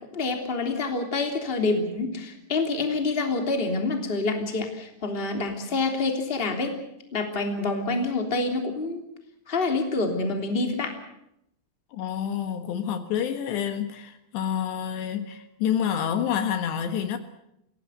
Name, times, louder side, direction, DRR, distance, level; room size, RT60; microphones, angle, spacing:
voice 1, 0.1-6.7 7.1-9.0 9.5-10.9, left 3 dB, 15° left, 2.6 m, -27 dB
voice 2, 11.9-17.2, left 9 dB, 70° left, 3.5 m, -28 dB
25.5 x 17.0 x 8.1 m
omnidirectional pair, 5.3 m